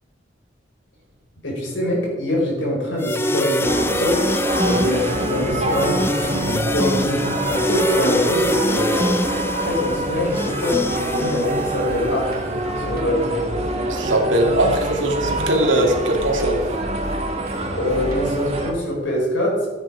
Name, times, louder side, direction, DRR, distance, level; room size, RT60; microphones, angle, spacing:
voice 1, 1.4-13.6 17.7-19.7, left 1 dB, 75° left, -2 dB, 5.0 m, -24 dB
sound 1, 3.0-12.1, left 1 dB, 10° left, 0.5 m, -24 dB
sound 2, 3.6-18.7, right 1 dB, 35° right, 1.7 m, -26 dB
sound 3, 11.9-18.6, equal, 50° right, 2.9 m, -35 dB
voice 2, 13.9-16.6, right 1 dB, 75° right, 2 dB, 2.4 m, -20 dB
14.0 x 9.7 x 4.9 m, 1.3 s
head